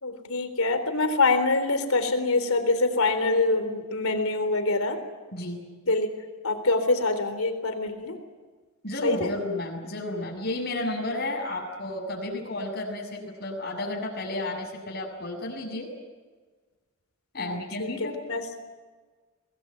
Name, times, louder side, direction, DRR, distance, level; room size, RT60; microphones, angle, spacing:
voice 1, 0.0-5.0 5.9-6.1 6.4-8.2 9.0-9.3 17.4-18.4, left 3 dB, 85° left, 9 dB, 3.8 m, -25 dB
voice 2, 8.8-15.9 17.3-18.2, left 2 dB, 50° left, 1 dB, 7.2 m, -32 dB
25.0 x 20.5 x 9.3 m, 1.4 s
head